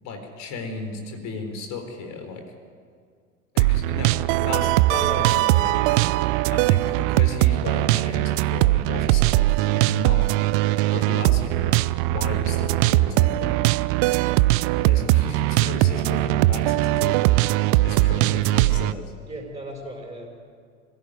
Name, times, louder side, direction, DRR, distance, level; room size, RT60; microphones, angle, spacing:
voice 1, 0.0-2.4 3.5-6.2 6.5-10.3 10.8-13.7 14.6-19.1, left 3 dB, 40° left, 5 dB, 4.2 m, -35 dB
sound 1, 3.6-18.9, right 18 dB, 40° right, 0.6 m, -20 dB
voice 2, 4.3-5.6 19.2-20.3, right 1 dB, 10° right, 0 dB, 6.6 m, -36 dB
24.5 x 16.5 x 9.9 m, 2.1 s
figure-of-eight pair, 80°, 42 cm